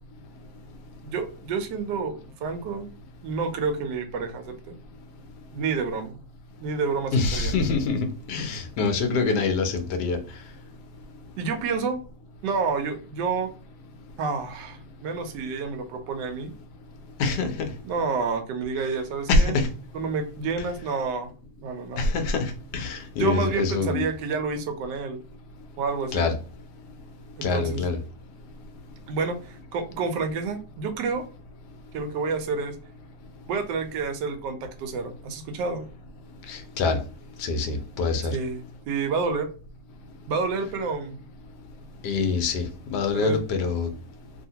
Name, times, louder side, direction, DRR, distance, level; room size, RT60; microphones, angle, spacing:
voice 1, 1.0-2.9 3.2-4.7 5.5-6.2 6.6-7.5 11.4-12.0 12.4-13.5 14.2-16.5 17.8-19.6 19.9-21.3 21.6-22.0 23.2-25.2 25.8-26.3 27.4-27.8 29.1-31.2 31.9-32.8 33.5-35.9 38.3-39.5 40.3-41.2 43.1-43.4, right 4 dB, 85° right, 1.2 m, -29 dB
voice 2, 7.1-8.0 8.3-10.2 17.2-17.5 19.3-19.7 22.0-24.0 26.1-26.3 27.4-28.0 36.5-37.0 37.4-38.3 42.0-42.6 42.9-43.9, left 3 dB, 75° left, 1.2 m, -25 dB
2.8 x 2.8 x 2.7 m
omnidirectional pair, 1.8 m